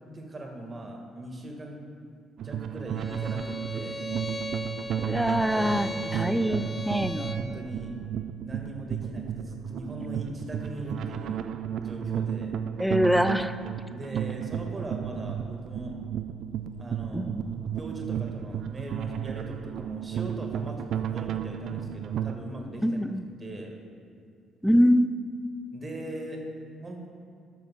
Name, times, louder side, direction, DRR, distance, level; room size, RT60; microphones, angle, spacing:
voice 1, 0.1-1.8 2.4-4.0 5.5-6.8 7.1-8.0 8.4-11.5 11.8-12.5 13.9-16.0 16.8-17.3 17.8-23.0 23.4-23.7 25.7-26.4 26.8-27.1, right 1 dB, 30° right, 2 dB, 1.7 m, -40 dB
sound 1, 2.4-22.4, right 9 dB, 60° right, 0.4 m, -33 dB
Bowed string instrument, 3.0-7.5, left 1 dB, 20° left, 1.2 m, -38 dB
voice 2, 5.0-7.3 12.8-13.6 17.1-17.6 22.8-23.2 24.6-25.2, equal, ahead, 10 dB, 0.5 m, -24 dB
14.5 x 12.0 x 2.3 m, 2.3 s
figure-of-eight pair, 45°, 0 cm